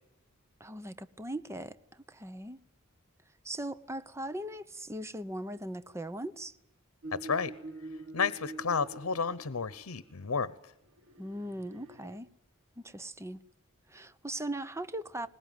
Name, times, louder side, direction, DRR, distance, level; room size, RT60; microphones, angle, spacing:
voice 1, 0.6-2.6 3.4-6.5 11.2-12.3 12.8-13.4 13.9-15.3, right 1 dB, 15° right, 0.8 m, -39 dB
sound 1, 7.0-10.0 11.0-12.2, right 2 dB, 70° right, 1.5 m, -46 dB
voice 2, 7.1-7.5 8.1-10.5, left 5 dB, 85° left, 0.9 m, -31 dB
22.0 x 20.0 x 9.3 m
head